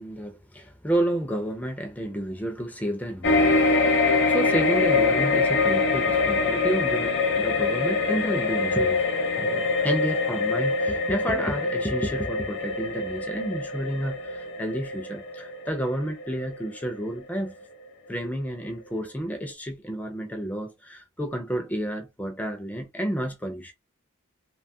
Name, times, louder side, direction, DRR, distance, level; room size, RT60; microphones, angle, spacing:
voice 1, 0.0-9.1 9.4-17.5 18.1-23.7, right 1 dB, 5° left, 0.4 m, -30 dB
sound 1, 3.2-17.8 18.2-18.3, left 3 dB, 55° left, 0.7 m, -24 dB
2.9 x 2.3 x 2.6 m
head